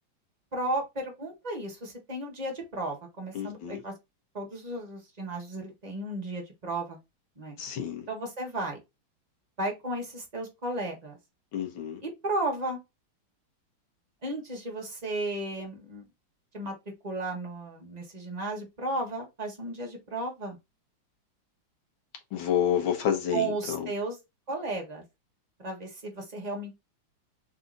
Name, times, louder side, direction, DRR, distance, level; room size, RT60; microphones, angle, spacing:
voice 1, 0.5-3.9 4.3-7.0 7.4-7.6 8.1-8.8 9.6-11.2 12.0-12.8 14.2-16.0 16.5-16.7 17.0-20.6 23.3-24.2 24.5-25.0 25.6-26.7, right 2 dB, 25° right, 1.1 m, -34 dB
voice 2, 3.4-3.8 7.6-8.1 11.5-12.0 22.3-23.8, left 9 dB, 85° left, 1.9 m, -29 dB
4.1 x 2.8 x 3.8 m
omnidirectional pair, 2.2 m